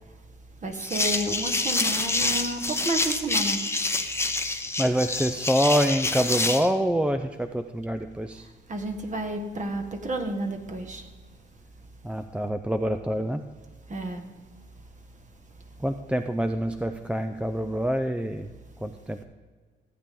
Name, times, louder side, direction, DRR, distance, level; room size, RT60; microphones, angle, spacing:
voice 1, 0.6-3.7 8.4-11.1 11.8-11.9 13.9-14.4, right 2 dB, 40° right, 4 dB, 1.5 m, -31 dB
sound 1, 0.8-6.7, left 2 dB, 15° left, 0.9 m, -27 dB
voice 2, 4.8-8.5 12.0-13.4 15.8-18.5 18.8-19.2, equal, 5° right, 7 dB, 0.5 m, -26 dB
15.0 x 8.6 x 3.7 m, 1.4 s
cardioid pair, 90°, 20 cm